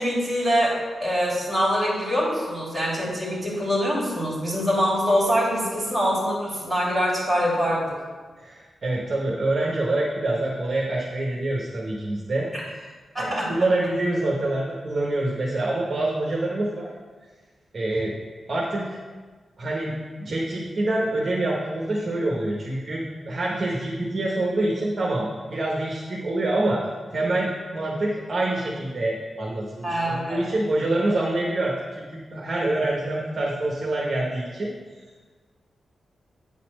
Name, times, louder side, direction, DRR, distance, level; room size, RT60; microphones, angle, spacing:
voice 1, 0.0-7.8 12.5-12.6 13.1-13.5 29.8-30.5, equal, ahead, -7 dB, 2.8 m, -24 dB
voice 2, 8.4-12.5 12.7-12.9 13.2-16.9 17.7-18.1 18.5-18.9 19.6-19.9 20.2-26.8 27.1-34.7, right 2 dB, 35° right, -3 dB, 1.0 m, -26 dB
8.8 x 4.2 x 6.2 m, 1.4 s
wide cardioid pair, 165°, 0 cm